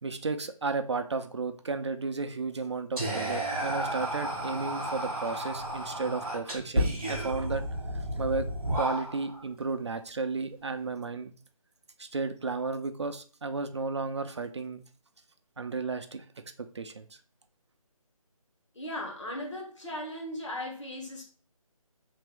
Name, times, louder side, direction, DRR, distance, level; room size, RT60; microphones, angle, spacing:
voice 1, 0.0-7.6 7.9-8.5 8.7-11.3 12.0-14.8 15.6-16.3 16.6-17.2, right 4 dB, 50° right, 0.4 m, -33 dB
Whispering, 3.0-9.4, right 1 dB, 5° left, 0.5 m, -32 dB
voice 2, 18.7-21.2, left 1 dB, 55° left, 1.3 m, -37 dB
3.4 x 2.5 x 3.5 m
figure-of-eight pair, 165°, 19 cm